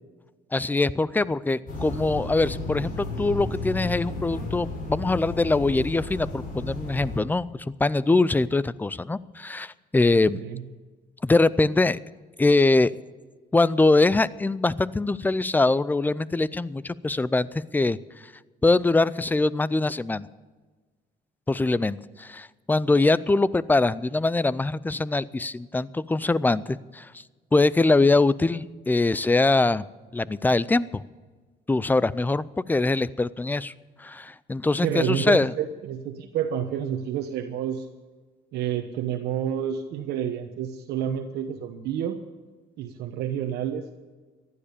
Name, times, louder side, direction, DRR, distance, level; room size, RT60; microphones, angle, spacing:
voice 1, 0.5-7.5 7.8-10.4 11.2-12.0 12.4-12.9 13.5-18.0 18.6-20.3 21.5-27.1 27.5-29.9 30.1-31.0 31.7-33.7 34.0-35.5, left 3 dB, 10° left, 19 dB, 0.5 m, -23 dB
sound 1, 1.7-7.2, left 2 dB, 55° left, 6.0 m, -33 dB
voice 2, 34.8-37.9 38.5-42.2 42.8-43.9, right 9 dB, 75° right, 5 dB, 1.1 m, -29 dB
15.0 x 11.5 x 6.9 m, 1.3 s
cardioid pair, 110°, 17 cm